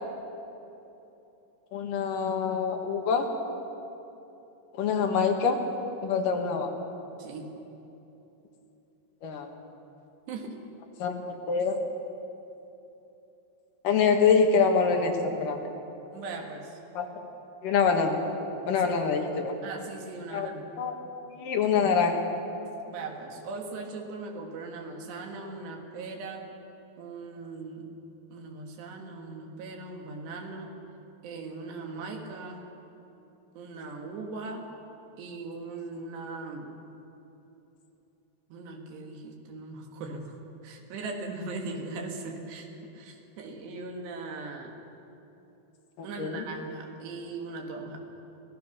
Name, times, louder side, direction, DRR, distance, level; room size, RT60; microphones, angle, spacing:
voice 1, 1.7-3.3 4.8-5.6 6.0-6.7 9.2-9.5 11.0-11.8 13.8-15.6 17.0-17.1 17.6-18.2 18.7-19.5 20.3-20.5 20.8-20.9 21.3-22.2 46.2-46.4, left 5 dB, 60° left, 3 dB, 2.8 m, -25 dB
voice 2, 7.2-7.5 10.3-10.6 16.1-16.8 18.8-18.9 19.6-20.7 22.9-26.5 27.0-27.9 28.3-30.8 31.2-32.7 33.6-34.7 35.2-36.7 38.5-40.4 40.6-44.7 46.0-48.0, right 3 dB, 85° right, 2 dB, 4.0 m, -39 dB
26.0 x 17.5 x 6.1 m, 3.0 s
omnidirectional pair, 4.7 m